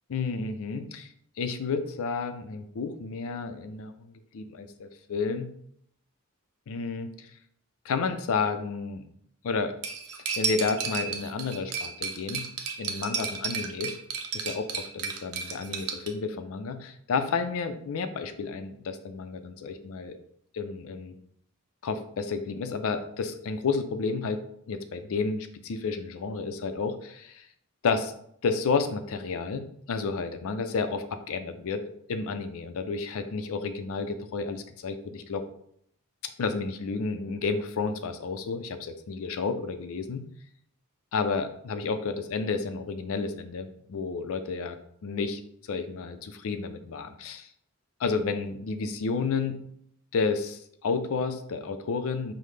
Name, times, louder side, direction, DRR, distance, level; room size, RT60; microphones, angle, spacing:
voice 1, 0.1-1.1 1.4-5.5 6.7-7.3 7.8-9.0 9.4-9.8 10.4-12.5 12.8-13.9 14.3-20.2 20.5-21.1 21.8-27.5 27.8-28.1 28.4-31.8 32.1-35.4 36.2-40.2 41.1-44.8 45.0-45.4 45.7-47.5 48.0-49.6 50.1-52.3, left 4 dB, 65° left, 9 dB, 0.4 m, -31 dB
Cutlery silverware, 9.8-16.1, right 6 dB, 85° right, 0.6 m, -33 dB
5.6 x 2.1 x 3.2 m, 0.69 s
head